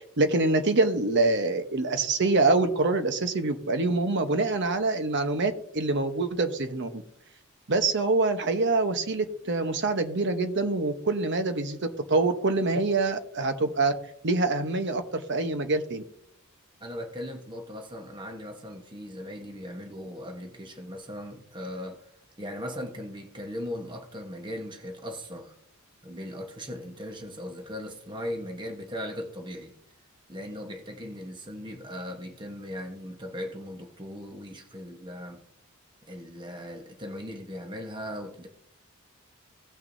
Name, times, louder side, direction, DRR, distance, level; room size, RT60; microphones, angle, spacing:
voice 1, 0.0-7.0 7.7-11.8 12.1-13.9 14.2-16.0, right 3 dB, 55° right, 1.0 m, -25 dB
voice 2, 16.8-22.0 22.4-25.5 26.0-29.7 30.3-35.4 36.1-38.5, equal, 20° right, 1.2 m, -38 dB
17.0 x 6.0 x 2.7 m
head